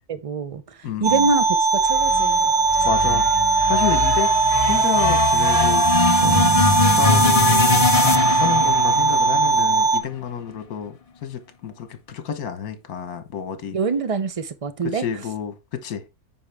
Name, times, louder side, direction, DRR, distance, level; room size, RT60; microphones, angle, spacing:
voice 1, 0.1-2.5 13.7-15.0, right 4 dB, 55° right, 0.3 m, -25 dB
voice 2, 0.8-1.3 2.8-3.3 3.7-4.3 4.7-5.8 6.2-6.3 6.9-7.9 8.3-10.9 11.2-13.8 14.8-16.0, left 7 dB, 70° left, 1.6 m, -29 dB
sound 1, 1.0-10.0, right 3 dB, 85° right, 1.6 m, -19 dB
sound 2, 1.8-10.2, left 5 dB, 50° left, 0.4 m, -23 dB
sound 3, 6.2-9.6, right 6 dB, 35° right, 0.7 m, -31 dB
8.6 x 5.3 x 3.4 m
omnidirectional pair, 1.6 m